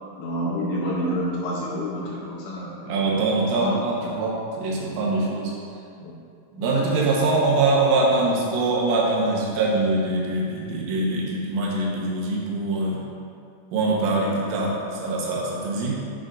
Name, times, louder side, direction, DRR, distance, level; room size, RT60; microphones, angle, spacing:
voice 1, 0.2-2.9 3.5-3.7 4.0-4.2 6.0-6.1, equal, 80° left, -4 dB, 2.7 m, -28 dB
voice 2, 2.8-5.6 6.5-13.1 13.7-16.0, right 2 dB, 85° right, -4 dB, 3.7 m, -23 dB
8.7 x 7.5 x 2.6 m, 2.4 s
omnidirectional pair, 5.6 m